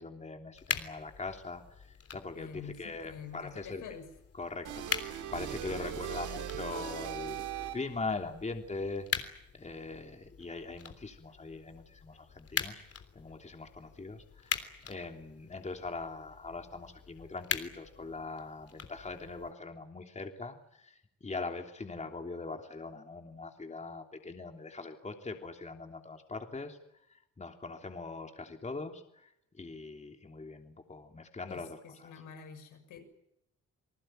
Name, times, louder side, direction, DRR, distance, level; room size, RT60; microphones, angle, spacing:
voice 1, 0.0-1.6 2.1-3.8 4.3-12.8 13.1-26.8 27.1-32.1, left 3 dB, 25° left, 4 dB, 3.3 m, -41 dB
sound 1, 0.5-19.5, left 7 dB, 50° left, 3.4 m, -42 dB
voice 2, 2.3-4.1 5.7-6.2 31.5-33.0, left 7 dB, 85° left, 6 dB, 6.9 m, -47 dB
sound 2, 4.6-8.1, right 10 dB, 85° right, 3.8 m, -39 dB
28.5 x 19.5 x 9.2 m, 0.79 s
cardioid pair, 90°, 30 cm